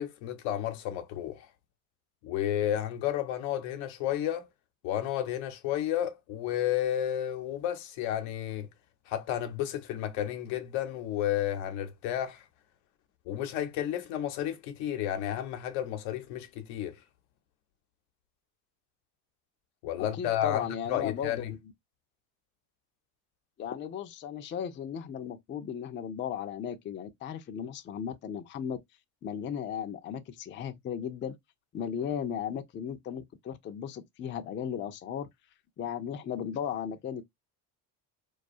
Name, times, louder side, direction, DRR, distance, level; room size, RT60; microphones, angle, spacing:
voice 1, 0.0-1.5 2.2-4.5 4.8-8.7 9.1-12.5 13.3-17.0 19.8-21.5, left 11 dB, 80° left, 0.7 m, -32 dB
voice 2, 20.0-21.6 23.6-28.8 29.2-31.4 31.7-35.3 35.8-37.2, left 8 dB, 25° left, 0.3 m, -36 dB
2.3 x 2.3 x 2.5 m
supercardioid pair, 70°, 47 cm